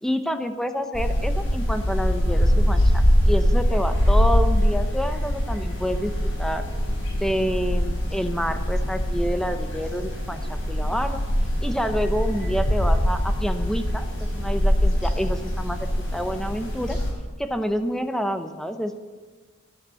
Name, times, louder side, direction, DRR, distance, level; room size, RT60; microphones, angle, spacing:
voice 1, 0.0-6.7 7.1-11.2 11.6-17.0 17.4-19.0, equal, ahead, 7 dB, 0.7 m, -28 dB
sound 1, 0.9-17.1, equal, 70° left, 5.3 m, -23 dB
12.5 x 12.0 x 7.0 m, 1.4 s
head